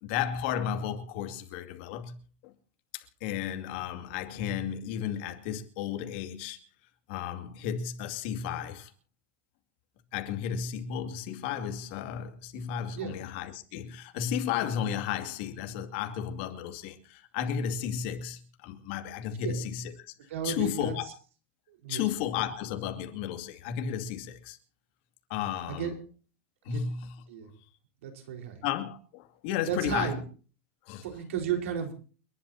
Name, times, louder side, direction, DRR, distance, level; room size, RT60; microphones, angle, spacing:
voice 1, 0.0-2.2 2.4-2.5 2.9-6.6 7.1-8.9 10.1-21.1 21.9-24.6 25.3-26.0 26.6-27.2 28.6-30.2 30.9-31.0, left 9 dB, 55° left, 2.4 m, -33 dB
voice 2, 20.3-20.9 21.7-22.0 25.7-25.9 26.7-26.8 27.3-27.5 28.0-28.6 29.7-30.2 31.0-31.9, right 8 dB, 90° right, 4.6 m, -33 dB
29.5 x 11.5 x 2.8 m
supercardioid pair, 160°, 7 cm